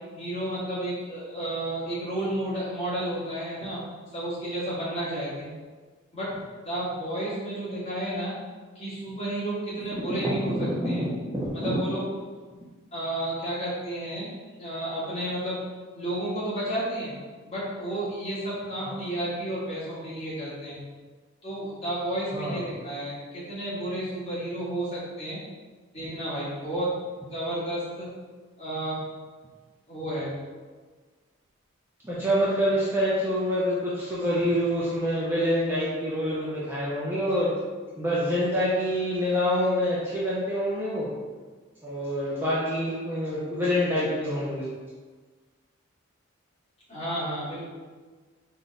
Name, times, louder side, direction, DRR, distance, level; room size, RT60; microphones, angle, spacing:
voice 1, 0.1-3.8 4.1-5.5 6.1-6.3 6.6-8.3 8.7-10.5 10.8-11.0 11.5-12.0 12.9-14.3 14.6-15.6 15.9-17.1 17.5-20.8 21.4-25.4 25.9-26.9 27.3-28.1 28.6-29.0 29.9-30.3 46.9-47.6, right 1 dB, 30° left, -10 dB, 1.4 m, -31 dB
voice 2, 10.1-11.1 11.3-11.8 18.9-19.0 22.3-22.7 32.0-37.5 38.0-41.1 41.8-44.7, equal, 10° right, -8 dB, 0.5 m, -26 dB
3.9 x 2.1 x 3.6 m, 1.4 s
head